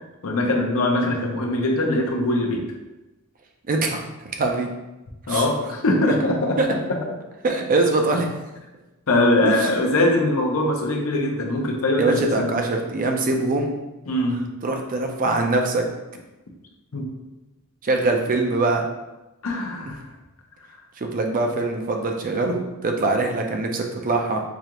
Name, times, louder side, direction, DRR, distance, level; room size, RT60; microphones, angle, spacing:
voice 1, 0.2-2.7 5.3-6.6 9.1-12.5 14.1-14.4 16.9-17.1 19.4-20.1, left 1 dB, 70° left, 1 dB, 0.7 m, -22 dB
voice 2, 3.7-4.7 5.3-5.5 6.6-6.7 7.4-8.3 9.4-9.7 12.0-13.7 14.6-15.8 17.8-18.8 21.0-24.4, right 3 dB, 40° right, 3 dB, 0.5 m, -23 dB
4.9 x 2.4 x 2.9 m, 1.0 s
head